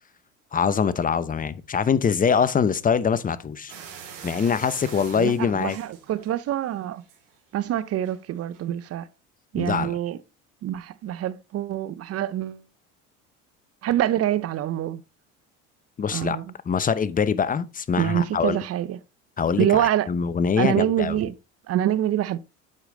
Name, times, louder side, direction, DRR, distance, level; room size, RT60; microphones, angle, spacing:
voice 1, 0.5-3.7 4.2-5.8 9.6-10.0 16.0-16.4 16.7-18.6 19.4-21.2, left 6 dB, 25° left, 0.7 m, -23 dB
sound 1, 3.7-6.5 6.9-7.4 8.0-8.2 8.5-8.6, right 7 dB, 70° right, 2.5 m, -43 dB
voice 2, 5.1-7.0 7.5-9.1 9.5-10.2 10.6-12.6 13.8-15.0 16.1-16.5 18.0-19.0 19.6-20.1 20.6-21.3 21.7-22.4, right 11 dB, 45° right, 0.7 m, -25 dB
8.3 x 5.0 x 3.8 m
supercardioid pair, 80°, 34 cm